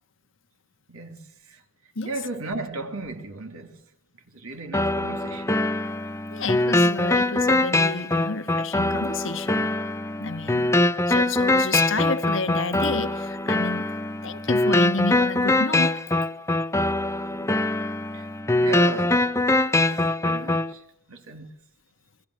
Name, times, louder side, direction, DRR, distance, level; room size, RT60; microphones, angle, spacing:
voice 1, 0.9-1.6 2.0-3.8 4.3-5.5 17.3-17.5 18.1-18.3 18.6-19.3 19.7-21.5, right 3 dB, 80° right, 3.3 m, -36 dB
sound 1, 4.7-20.7, left 2 dB, 15° left, 0.9 m, -23 dB
voice 2, 6.3-9.8 10.2-10.7 11.1-13.9 14.2-16.0, left 3 dB, 65° left, 1.5 m, -30 dB
29.0 x 21.0 x 6.3 m
head